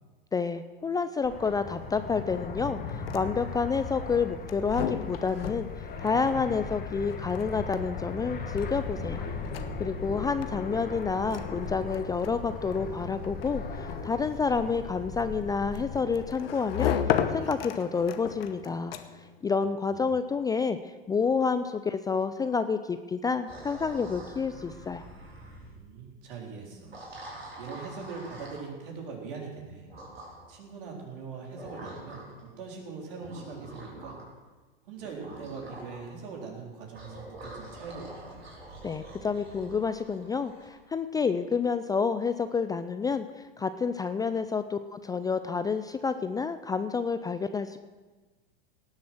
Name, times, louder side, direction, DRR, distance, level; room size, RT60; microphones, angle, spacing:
voice 1, 0.3-5.7 6.0-9.3 9.8-19.0 19.4-20.8 21.1-25.1 38.8-47.8, left 5 dB, 10° left, 10 dB, 0.4 m, -29 dB
Fixed-wing aircraft airplane, 1.2-16.3, left 4 dB, 30° left, 2.1 m, -38 dB
sound 1, 2.9-19.4, left 9 dB, 75° left, 1.0 m, -36 dB
sound 2, 23.5-25.7 26.8-28.7 29.9-30.6 31.5-32.4 33.2-34.3 35.0-36.0 36.9-40.7, right 1 dB, 90° right, 3.7 m, -45 dB
voice 2, 25.6-26.9 27.6-29.9 30.2-34.2 34.9-38.4, right 5 dB, 65° right, 0 dB, 3.9 m, -42 dB
18.0 x 7.3 x 6.2 m, 1.3 s
hypercardioid pair, 95°, 30 cm